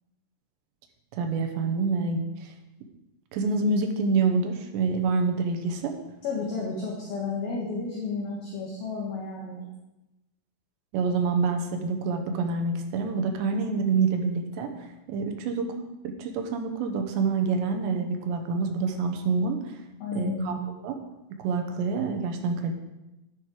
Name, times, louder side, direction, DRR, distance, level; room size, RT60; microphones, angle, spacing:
voice 1, 1.1-2.5 3.3-6.0 10.9-19.8 20.1-21.0 21.4-22.7, right 4 dB, 75° right, 5 dB, 2.8 m, -27 dB
voice 2, 6.2-9.7 20.0-20.6, left 4 dB, 60° left, -3 dB, 2.9 m, -32 dB
11.0 x 10.5 x 5.0 m, 0.97 s
omnidirectional pair, 5.9 m